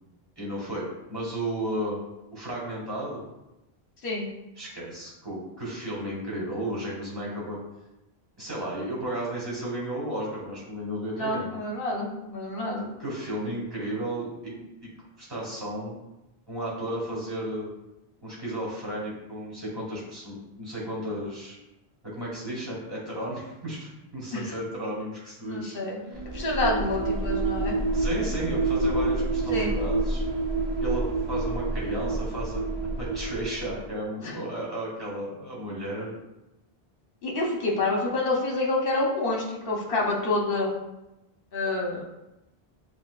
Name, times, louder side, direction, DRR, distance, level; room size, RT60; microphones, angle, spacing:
voice 1, 0.4-2.0 2.3-3.2 4.6-7.6 8.4-11.5 13.0-14.5 14.8-14.9 15.2-16.0 16.5-17.7 18.2-21.6 22.0-25.8 26.1-26.2 27.9-30.2 30.8-32.6 33.0-36.1, right 1 dB, 25° right, -5 dB, 1.5 m, -33 dB
voice 2, 11.2-12.9 13.4-13.5 24.3-24.4 25.4-27.8 29.5-29.7 37.2-40.7 41.5-42.1, left 2 dB, 65° left, -1 dB, 1.1 m, -28 dB
sound 1, 26.1-33.9, right 2 dB, 45° right, 0.7 m, -28 dB
6.9 x 2.4 x 2.4 m, 0.94 s
omnidirectional pair, 1.1 m